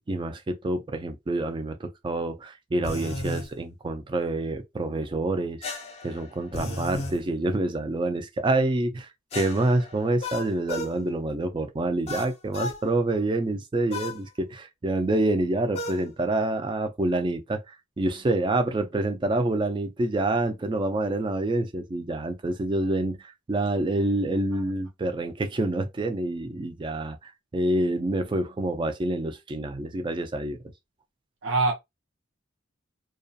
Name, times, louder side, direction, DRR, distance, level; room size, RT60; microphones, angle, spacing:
voice 1, 0.0-5.6 6.0-30.6, right 2 dB, 25° right, 0.3 m, -27 dB
sound 1, 2.8-3.5 5.6-7.2 9.3-11.0 12.1-12.8 13.9-14.2 15.7-16.0, left 2 dB, 30° left, 0.5 m, -34 dB
voice 2, 31.4-31.7, right 3 dB, 70° right, 0.6 m, -24 dB
2.3 x 2.3 x 2.6 m
head